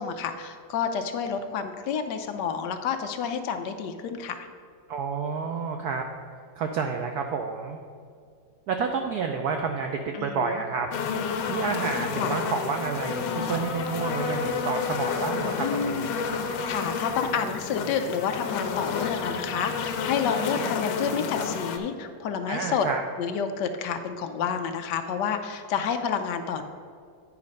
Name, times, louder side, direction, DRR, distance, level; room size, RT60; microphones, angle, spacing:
voice 1, 0.0-4.5 10.1-10.6 12.2-12.4 15.6-16.1 16.4-22.8 23.2-26.6, left 7 dB, 70° left, 7 dB, 1.1 m, -29 dB
voice 2, 4.9-6.0 6.6-7.8 8.7-10.9 11.5-16.2 22.5-23.0, right 5 dB, 80° right, 4 dB, 0.8 m, -29 dB
sound 1, 10.9-21.8, left 5 dB, 90° left, 1.5 m, -30 dB
9.6 x 4.9 x 5.2 m, 2.2 s
omnidirectional pair, 2.2 m